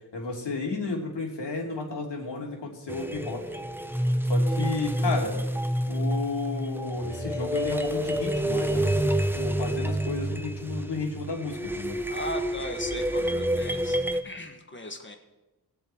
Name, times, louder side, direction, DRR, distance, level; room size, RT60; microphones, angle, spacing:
voice 1, 0.1-3.4 4.3-5.4 5.8-12.0, left 3 dB, 85° left, 0 dB, 2.9 m, -32 dB
sound 1, 2.9-14.2, right 1 dB, 5° right, 0.7 m, -28 dB
voice 2, 12.1-14.0 14.2-15.2, left 1 dB, 30° left, 5 dB, 1.4 m, -37 dB
21.5 x 7.1 x 4.5 m, 1.0 s
wide cardioid pair, 120°, 41 cm